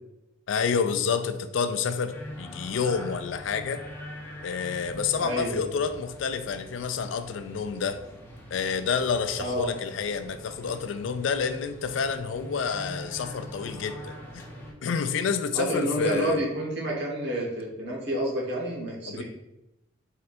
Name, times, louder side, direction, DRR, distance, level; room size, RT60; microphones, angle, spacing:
voice 1, 0.5-3.8 4.4-8.0 8.5-14.4 14.8-16.4 19.1-19.2, left 6 dB, 70° left, 10 dB, 0.4 m, -29 dB
sound 1, 2.1-14.7, left 1 dB, 10° left, 0.9 m, -43 dB
voice 2, 5.2-5.7 9.4-9.7 15.5-19.2, equal, 65° right, -3 dB, 1.3 m, -29 dB
4.4 x 4.2 x 2.5 m, 0.93 s
head